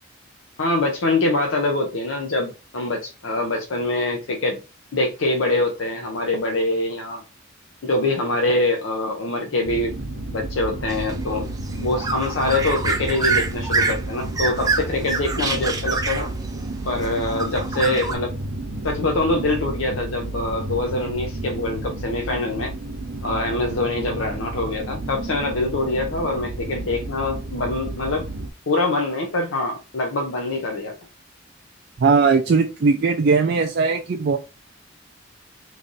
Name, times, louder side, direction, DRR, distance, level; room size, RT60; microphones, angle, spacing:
voice 1, 0.6-4.6 4.9-7.2 7.8-9.9 10.3-11.5 11.8-16.3 16.9-18.3 18.8-22.7 23.2-28.2 28.7-31.0, left 2 dB, 85° left, 0.6 m, -24 dB
sound 1, 9.7-28.5, right 2 dB, 85° right, 0.8 m, -32 dB
sound 2, 10.9-18.1, right 3 dB, 20° right, 0.7 m, -27 dB
voice 2, 32.0-34.4, right 4 dB, 55° right, 0.4 m, -19 dB
3.2 x 2.5 x 3.8 m
head